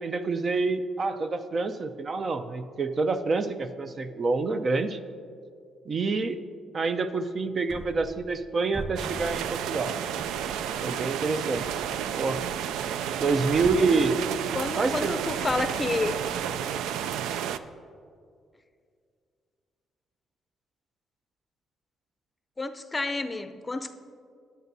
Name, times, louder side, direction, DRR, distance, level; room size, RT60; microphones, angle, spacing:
voice 1, 0.0-5.0 5.9-6.4 6.7-9.9 10.8-11.8 12.2-12.4 13.2-14.2 14.8-15.1, right 4 dB, 45° right, 10 dB, 0.6 m, -27 dB
sound 1, 7.7-8.5 8.7-9.8 10.2-11.0 11.5-16.6, equal, 5° right, 1.5 m, -44 dB
sound 2, 9.0-17.6, right 9 dB, 90° right, 0.3 m, -31 dB
voice 2, 14.5-16.2 22.6-23.9, left 2 dB, 20° left, 9 dB, 0.6 m, -29 dB
19.5 x 8.1 x 2.7 m, 2.3 s
cardioid pair, 90°, 0 cm